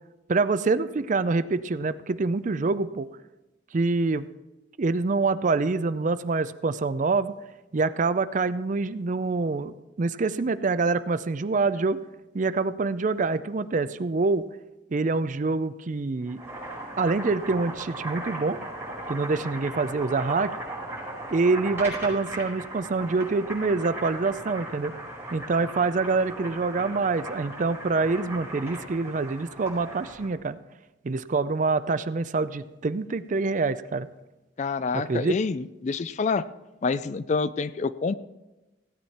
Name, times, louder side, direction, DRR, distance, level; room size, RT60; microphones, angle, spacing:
voice 1, 0.3-3.1 3.7-4.2 4.8-7.3 7.7-12.0 12.3-14.4 14.9-16.4 17.0-18.6 19.1-20.5 21.3-24.9 25.3-30.6 31.0-34.1 34.9-35.4, right 3 dB, 40° right, 14 dB, 0.4 m, -26 dB
Boiling, 16.2-30.3, right 1 dB, 10° right, 4.8 m, -37 dB
voice 2, 34.6-36.4 36.8-38.1, left 4 dB, 40° left, 15 dB, 0.4 m, -27 dB
16.0 x 8.9 x 4.3 m, 1.1 s
head